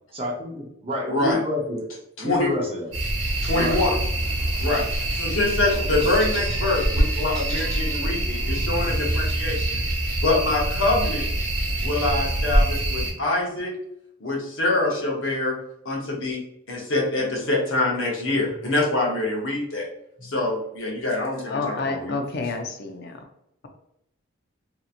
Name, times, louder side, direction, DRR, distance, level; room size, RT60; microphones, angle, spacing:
voice 1, 0.1-1.8 2.2-2.9 3.5-3.8 20.2-20.3, left 1 dB, 30° right, -2 dB, 0.7 m, -28 dB
voice 2, 1.1-1.4 2.2-2.5 3.4-4.0 4.6-9.8 10.1-11.3 11.8-13.7 14.2-15.6 15.8-16.4 16.7-19.9 20.2-22.1, left 2 dB, 70° left, -2 dB, 0.8 m, -25 dB
sound 1, 2.9-13.1, right 1 dB, 70° right, 0.9 m, -25 dB
sound 2, 3.2-9.5, right 1 dB, 5° left, 0.8 m, -42 dB
voice 3, 21.5-23.2, left 3 dB, 55° left, 4 dB, 0.4 m, -29 dB
2.8 x 2.6 x 2.4 m, 0.77 s
head